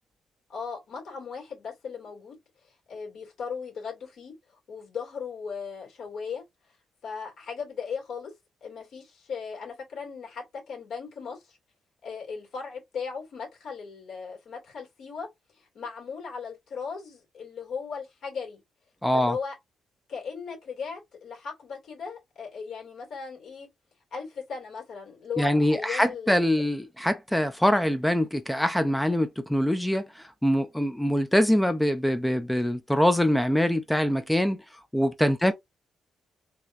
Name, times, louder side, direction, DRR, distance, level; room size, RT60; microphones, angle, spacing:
voice 1, 0.5-2.4 2.6-4.3 4.7-6.4 7.0-8.3 8.6-11.6 12.0-18.6 19.1-19.6 20.1-23.7 24.1-26.7 35.4-35.5, left 6 dB, 60° left, 2.4 m, -37 dB
voice 2, 19.0-19.4 25.4-35.5, equal, 5° left, 0.4 m, -24 dB
3.4 x 3.2 x 2.5 m
cardioid pair, 145°, 0 cm